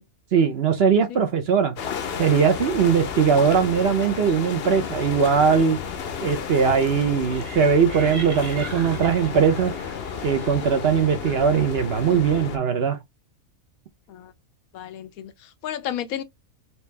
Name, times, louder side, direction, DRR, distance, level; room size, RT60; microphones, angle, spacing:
voice 1, 0.3-1.7 2.2-5.8 6.2-9.7 10.2-13.0, right 6 dB, 55° right, 0.8 m, -20 dB
sound 1, 1.8-12.6, left 7 dB, 55° left, 0.8 m, -32 dB
sound 2, 7.2-12.0, right 3 dB, 80° right, 1.8 m, -41 dB
voice 2, 14.7-16.2, left 10 dB, 80° left, 1.1 m, -33 dB
4.5 x 2.7 x 3.3 m
omnidirectional pair, 1.5 m